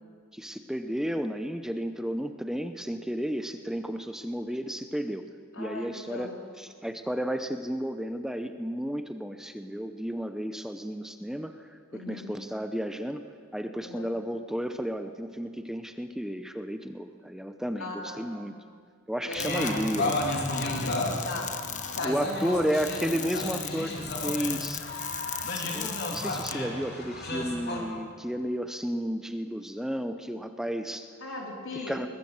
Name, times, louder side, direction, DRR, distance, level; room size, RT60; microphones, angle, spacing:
voice 1, 0.3-5.2 5.6-6.3 6.6-13.2 13.5-18.5 19.1-20.2 22.0-23.9 24.2-24.8 25.5-31.1 31.9-32.1, equal, 5° right, 8 dB, 0.7 m, -32 dB
voice 2, 5.5-6.4 11.9-12.4 13.8-14.2 17.8-18.4 19.2-21.6 21.9-22.7 31.2-32.1, left 2 dB, 70° left, 0 dB, 4.0 m, -38 dB
sound 1, 19.3-26.5, left 9 dB, 40° left, 1.1 m, -38 dB
sound 2, 19.4-27.8, left 1 dB, 55° left, 3.4 m, -33 dB
21.5 x 20.5 x 7.4 m, 2.1 s
head